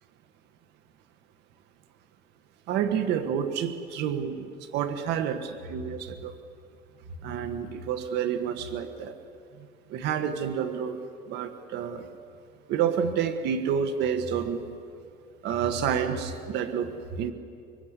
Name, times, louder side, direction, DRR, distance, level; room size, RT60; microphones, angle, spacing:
voice 1, 2.7-4.5 4.7-6.3 7.2-9.1 9.9-11.0 11.3-12.1 12.7-14.7 15.4-17.3, right 8 dB, 85° right, 8 dB, 1.7 m, -29 dB
25.5 x 24.0 x 8.3 m, 2.4 s
cardioid pair, 110°, 17 cm